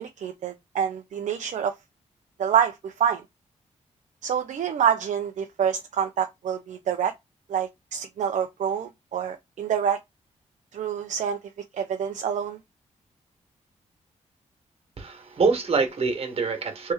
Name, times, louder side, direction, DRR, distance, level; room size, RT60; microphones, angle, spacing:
voice 1, 0.0-1.7 2.4-3.2 4.2-7.1 7.5-10.0 10.7-11.4 11.7-12.6, right 8 dB, 70° right, 0.5 m, -27 dB
voice 2, 15.0-16.9, right 4 dB, 50° right, 1.3 m, -25 dB
3.2 x 3.0 x 3.4 m
cardioid pair, 75°, 13 cm